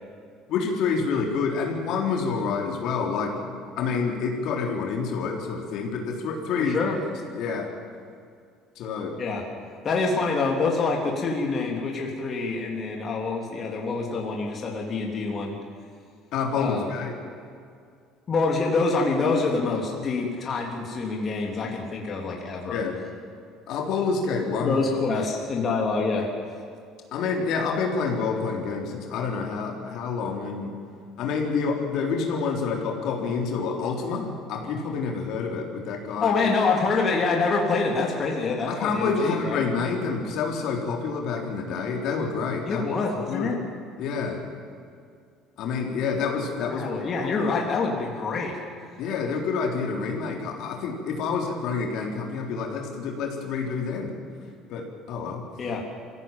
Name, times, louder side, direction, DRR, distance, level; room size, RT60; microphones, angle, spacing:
voice 1, 0.5-6.8 7.3-7.7 8.8-9.1 16.3-17.1 22.7-23.0 23.7-24.8 27.1-30.7 31.2-36.3 38.7-42.8 43.3-43.5 44.0-44.4 45.6-47.0 47.5-47.6 49.0-54.1 54.7-55.4, left 5 dB, 65° left, 1 dB, 3.9 m, -28 dB
voice 2, 6.6-7.0 9.2-9.4 9.8-15.5 16.6-17.0 18.3-22.8 24.6-26.3 36.2-39.6 42.7-43.6 46.7-48.6 55.6-55.8, left 4 dB, 35° left, 0 dB, 3.3 m, -26 dB
23.0 x 16.0 x 9.1 m, 2.3 s
cardioid pair, 115°, 0 cm